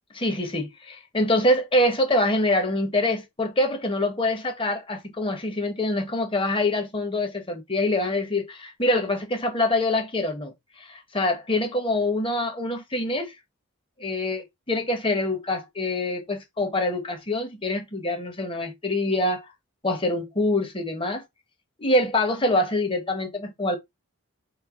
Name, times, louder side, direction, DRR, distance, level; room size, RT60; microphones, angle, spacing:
voice 1, 0.2-13.3 14.0-19.5 19.8-21.2 21.8-23.8, left 1 dB, 25° left, 1.0 m, -25 dB
3.3 x 3.0 x 4.7 m
head